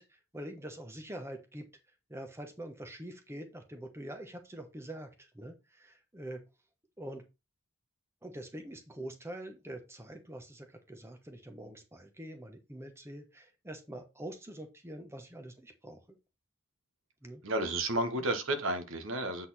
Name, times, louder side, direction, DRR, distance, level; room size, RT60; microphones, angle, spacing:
voice 1, 0.0-1.7 2.1-6.4 7.0-7.2 8.2-16.0 17.2-17.4, right 1 dB, 10° right, 1.0 m, -45 dB
voice 2, 17.4-19.5, right 1 dB, 65° right, 1.2 m, -32 dB
8.0 x 4.1 x 4.1 m
head